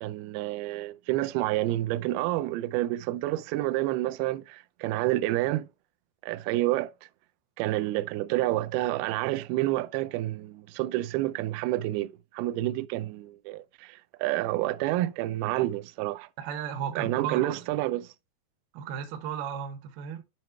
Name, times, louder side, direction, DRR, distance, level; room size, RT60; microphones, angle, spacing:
voice 1, 0.0-5.7 6.2-6.9 7.6-16.3 17.0-18.1, right 16 dB, 90° right, 2.2 m, -29 dB
voice 2, 16.4-17.5 18.7-20.2, right 8 dB, 70° right, 2.6 m, -35 dB
9.2 x 3.1 x 4.5 m
omnidirectional pair, 5.0 m